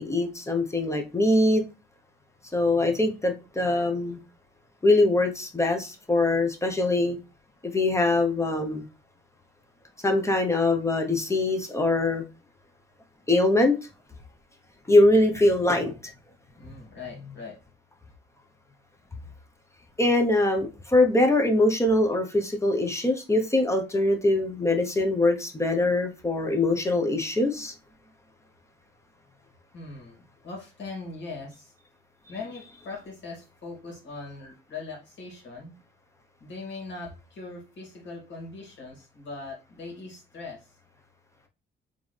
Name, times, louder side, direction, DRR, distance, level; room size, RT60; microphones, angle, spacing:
voice 1, 0.0-1.6 2.5-4.2 4.8-7.2 7.7-8.9 10.0-12.2 13.3-13.8 14.9-15.9 20.0-27.7, left 2 dB, 15° left, 4 dB, 1.0 m, -23 dB
voice 2, 16.6-17.6 29.7-31.7 32.3-35.8 36.4-40.7, left 3 dB, 65° left, -1 dB, 2.6 m, -40 dB
3.7 x 3.7 x 3.4 m, 0.29 s
cardioid pair, 90°, 20 cm